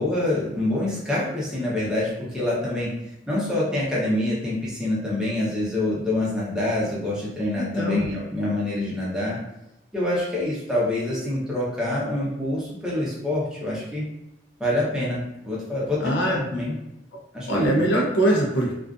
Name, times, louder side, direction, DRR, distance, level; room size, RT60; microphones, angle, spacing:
voice 1, 0.0-2.9 3.3-9.4 9.9-14.0 14.6-16.7 17.3-17.8, left 1 dB, 5° right, -7 dB, 0.7 m, -26 dB
voice 2, 7.6-8.0 16.0-16.4 17.5-18.7, right 1 dB, 80° left, -2 dB, 0.6 m, -22 dB
2.4 x 2.3 x 2.4 m, 0.87 s
head